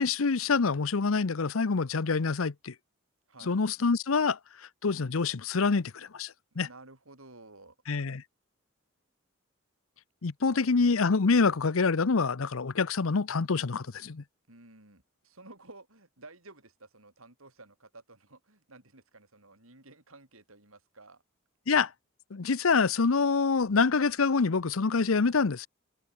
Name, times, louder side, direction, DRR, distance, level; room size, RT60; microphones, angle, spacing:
voice 1, 0.0-2.7 3.4-6.7 7.9-8.2 10.2-14.2 21.7-21.9 22.3-25.7, left 4 dB, 85° left, 0.8 m, -26 dB
voice 2, 3.3-3.6 6.5-7.8 10.4-10.7 14.5-21.2, right 2 dB, 90° right, 7.4 m, -53 dB
open air
head